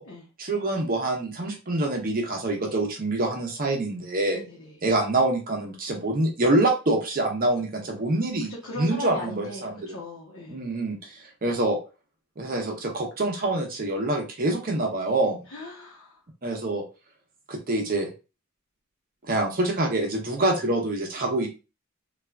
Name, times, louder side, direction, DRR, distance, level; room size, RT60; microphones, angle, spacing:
voice 1, 0.4-4.4 4.8-10.0 10.5-11.8 12.4-15.4 16.4-16.8 17.5-18.1 19.3-21.5, right 2 dB, 45° right, 2 dB, 0.7 m, -26 dB
voice 2, 4.3-4.7 8.5-10.6 15.5-16.2, left 1 dB, 90° left, -4 dB, 0.8 m, -38 dB
3.3 x 2.4 x 2.3 m, 0.30 s
head